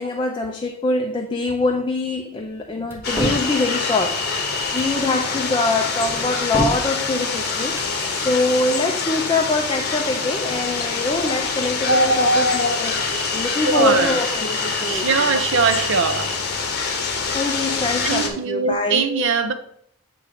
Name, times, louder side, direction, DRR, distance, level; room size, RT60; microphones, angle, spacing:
voice 1, 0.0-15.6 16.7-16.8 17.3-19.3, left 3 dB, 20° left, 0.4 m, -24 dB
sound 1, 2.9-3.5 4.6-5.0 6.0-6.9 7.6-8.0, right 1 dB, 10° right, 1.0 m, -27 dB
sound 2, 3.0-18.3, left 3 dB, 45° left, 1.0 m, -24 dB
voice 2, 13.7-14.1 14.9-16.3 18.0-19.5, right 5 dB, 60° right, 0.6 m, -21 dB
8.2 x 3.1 x 4.9 m
head